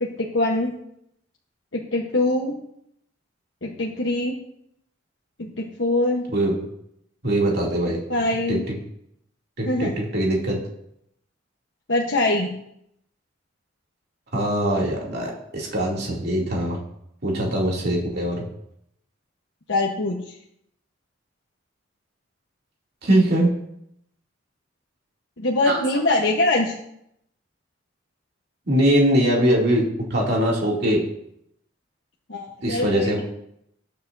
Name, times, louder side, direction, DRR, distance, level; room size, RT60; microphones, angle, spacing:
voice 1, 0.2-0.7 1.7-2.6 3.6-4.4 5.4-6.3 8.1-8.6 9.7-9.9 11.9-12.5 19.7-20.3 25.4-26.7 32.3-33.1, left 2 dB, 70° left, -2 dB, 1.1 m, -23 dB
voice 2, 7.2-8.0 8.5-8.6 9.6-10.6 14.3-16.8 17.2-18.4 23.0-23.5 25.7-25.8 28.7-31.0 32.6-33.2, right 1 dB, 55° right, -3 dB, 2.7 m, -22 dB
20.0 x 6.8 x 2.7 m, 0.77 s
head